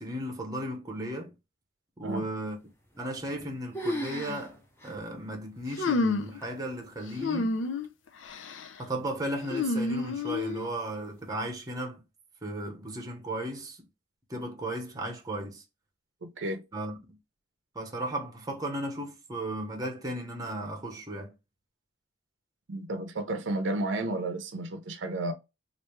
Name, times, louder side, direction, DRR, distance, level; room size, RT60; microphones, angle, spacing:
voice 1, 0.0-1.3 2.0-2.6 3.0-7.6 8.8-12.0 12.4-13.8 14.3-15.6 16.7-17.2 17.7-21.3, right 1 dB, 20° right, 0.8 m, -35 dB
sound 1, 3.0-3.5 3.7-4.5 4.8-4.9 5.6-5.7 6.4-6.8, equal, 15° left, 0.8 m, -35 dB
sound 2, 5.8-6.4 7.2-7.9 8.3-8.7 9.5-10.7, left 3 dB, 80° left, 0.5 m, -29 dB
voice 2, 16.2-16.6 22.7-25.3, right 2 dB, 70° right, 0.6 m, -32 dB
3.3 x 2.5 x 3.0 m
head